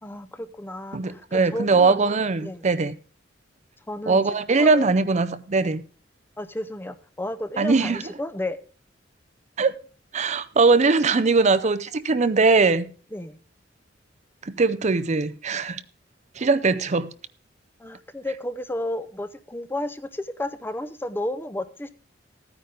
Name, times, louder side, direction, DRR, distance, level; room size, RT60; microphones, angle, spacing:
voice 1, 0.0-2.0 2.4-2.7 3.9-4.2 4.5-4.9 6.4-8.6 13.1-13.4 17.8-21.9, left 1 dB, 10° left, 0.6 m, -32 dB
voice 2, 0.9-2.9 4.1-5.8 7.6-8.0 9.6-9.8 10.1-12.9 14.4-15.8 16.4-17.1, right 4 dB, 40° right, 0.5 m, -21 dB
14.0 x 9.6 x 3.8 m
head